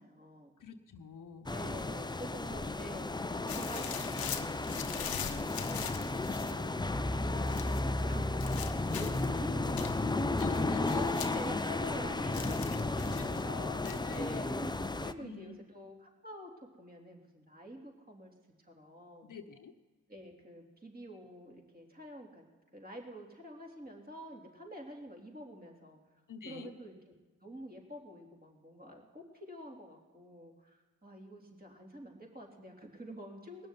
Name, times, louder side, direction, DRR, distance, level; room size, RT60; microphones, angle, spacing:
voice 1, 0.0-0.6 1.5-3.1 3.5-5.9 6.3-9.1 9.4-9.9 10.5-10.7 10.9-13.6 14.1-16.5 16.8-19.3 20.1-22.4 22.7-26.0 26.5-26.9 27.4-33.7, equal, 25° right, 0 dB, 3.6 m, -48 dB
voice 2, 0.6-1.5 8.9-9.8 10.4-11.1 13.1-14.5 15.2-15.6 19.2-19.8 26.3-26.7, left 6 dB, 60° left, 7 dB, 1.1 m, -48 dB
sound 1, 1.5-15.1, left 2 dB, 10° left, 0.6 m, -33 dB
sound 2, 3.5-6.6 7.5-7.9 8.4-9.3 9.8-12.0 12.3-13.4 13.8-14.2, left 9 dB, 80° left, 1.0 m, -42 dB
19.5 x 6.7 x 9.3 m, 1.3 s
supercardioid pair, 55°, 36 cm